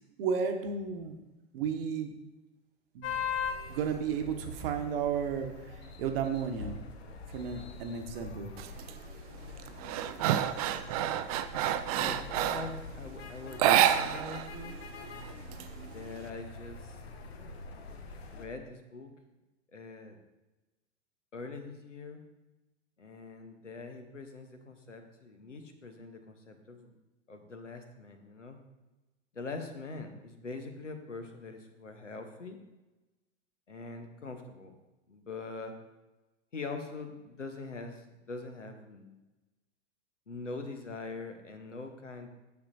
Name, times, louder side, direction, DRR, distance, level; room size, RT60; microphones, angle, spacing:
voice 1, 0.2-1.2 1.5-2.1 2.9-3.1 3.7-5.5 6.0-6.8 7.3-8.5, right 6 dB, 50° right, 5 dB, 1.0 m, -33 dB
sound 1, 3.0-18.5, left 5 dB, 60° left, 0.9 m, -43 dB
sound 2, 8.6-8.9 9.3-12.8 13.5-14.5 14.7-14.8 15.2-16.2, right 11 dB, 35° right, 0.4 m, -28 dB
voice 2, 11.9-14.7 15.8-17.0 18.3-19.1 19.7-20.2 21.3-22.2 23.0-26.9 27.3-28.6 29.3-32.6 33.7-34.7 35.1-35.8 36.5-39.2 40.3-42.3, left 3 dB, 85° left, 6 dB, 1.0 m, -43 dB
9.4 x 6.6 x 2.6 m, 1.1 s
figure-of-eight pair, 95°, 36 cm